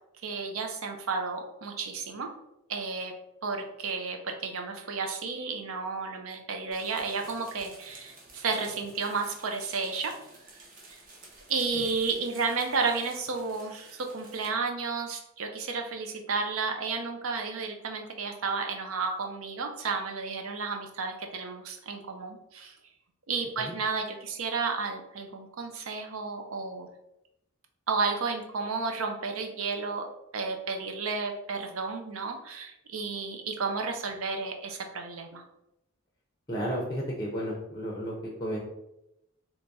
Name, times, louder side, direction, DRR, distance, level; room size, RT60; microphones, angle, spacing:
voice 1, 0.2-2.3 2.7-3.1 3.4-10.1 10.9-11.0 11.5-22.7 23.3-26.9 27.9-30.1 30.3-35.4, right 4 dB, 75° right, 4 dB, 0.5 m, -32 dB
sound 1, 6.7-14.5, right 2 dB, 40° right, 0.7 m, -51 dB
voice 2, 36.5-38.6, equal, 20° left, -2 dB, 0.5 m, -33 dB
2.9 x 2.7 x 3.4 m, 0.86 s
head